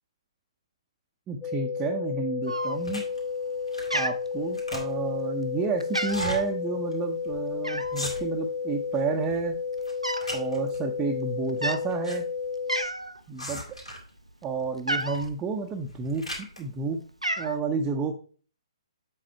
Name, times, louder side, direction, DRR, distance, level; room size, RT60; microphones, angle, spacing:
voice 1, 1.3-3.1 3.9-9.6 10.3-12.2 13.3-13.6 14.4-16.3 16.6-17.0 17.4-18.1, right 4 dB, 15° right, 1 dB, 0.7 m, -30 dB
sound 1, 1.4-12.9, left 5 dB, 15° left, 0.8 m, -32 dB
Cat, 2.5-3.1 3.4-3.7 3.9-4.9 5.4-5.6 5.8-6.4 7.6-8.1 8.9-9.0 9.2-10.3 10.6-10.9 11.5-11.8 12.3-12.4 12.7-13.2 13.6-15.3 16.1-16.7 16.9-17.6, right 1 dB, 90° right, 0.6 m, -31 dB
sound 2, 2.8-3.2 3.7-4.0 4.3-5.2 6.0-6.4 6.9-7.0 7.2-7.5 7.8-8.5 8.9-9.4 9.8-10.8 11.6-12.2 12.4-12.5 13.4-14.1 15.0-15.3 15.8-16.6, equal, 80° left, 2.6 m, -38 dB
7.5 x 4.1 x 4.4 m, 0.41 s
figure-of-eight pair, 130°, 3 cm